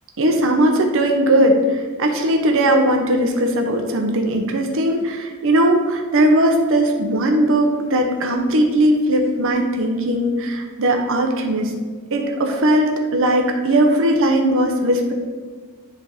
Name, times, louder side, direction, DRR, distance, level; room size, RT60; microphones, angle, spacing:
voice 1, 0.2-11.7 12.1-15.1, right 1 dB, 60° right, 3 dB, 0.8 m, -18 dB
10.5 x 3.5 x 3.6 m, 1.5 s
head